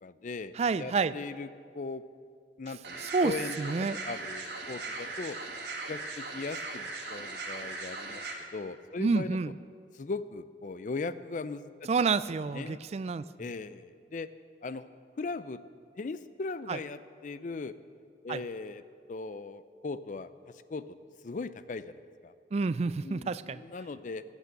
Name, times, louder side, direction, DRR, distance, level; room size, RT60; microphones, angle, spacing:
voice 1, 0.0-1.5 1.7-2.0 2.6-5.4 5.9-9.4 9.9-11.9 12.5-12.8 13.4-14.3 14.6-14.9 15.2-15.6 16.0-17.7 18.2-18.8 19.1-20.3 20.7-20.9 21.2-22.3 23.0-24.2, left 3 dB, 45° left, 14 dB, 0.4 m, -39 dB
voice 2, 0.6-1.1 3.0-4.0 9.0-9.5 11.9-13.2 16.7-16.8 18.3-18.4 22.5-23.6, right 4 dB, 35° right, 16 dB, 0.3 m, -29 dB
sound 1, 2.8-8.3, right 3 dB, 70° right, 1.9 m, -39 dB
13.5 x 8.4 x 7.7 m, 2.2 s
head